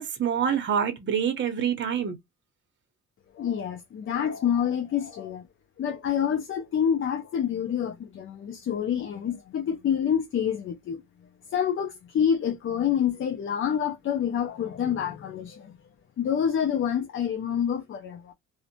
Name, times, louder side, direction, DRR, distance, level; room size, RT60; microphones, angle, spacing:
voice 1, 0.0-2.2, right 8 dB, 40° right, 0.7 m, -26 dB
voice 2, 3.4-5.4 5.8-11.0 11.5-15.8 16.2-18.3, left 8 dB, 45° left, 0.5 m, -27 dB
2.6 x 2.1 x 2.7 m
cardioid pair, 90°, 30 cm